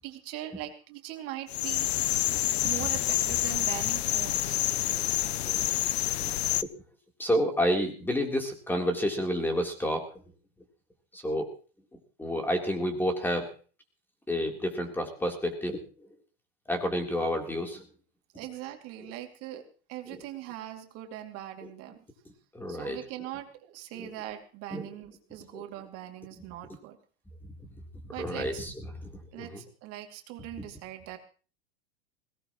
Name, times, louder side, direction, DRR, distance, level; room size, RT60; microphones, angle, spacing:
voice 1, 0.0-1.9 2.6-4.6 18.3-19.6 19.9-22.0 22.7-27.0 28.1-28.6 29.3-31.2, right 13 dB, 50° right, 4 dB, 2.7 m, -41 dB
sound 1, 1.5-6.6, left 13 dB, 85° left, 0.7 m, -28 dB
voice 2, 7.2-10.1 11.1-11.5 12.2-13.5 14.3-15.8 16.7-17.9 20.1-20.2 21.6-21.7 22.5-23.0 24.0-24.1 24.7-24.9 25.5-25.6 28.0-29.6, equal, 5° left, 3 dB, 3.6 m, -30 dB
21.0 x 18.0 x 3.1 m, 0.38 s
hypercardioid pair, 120°, 31 cm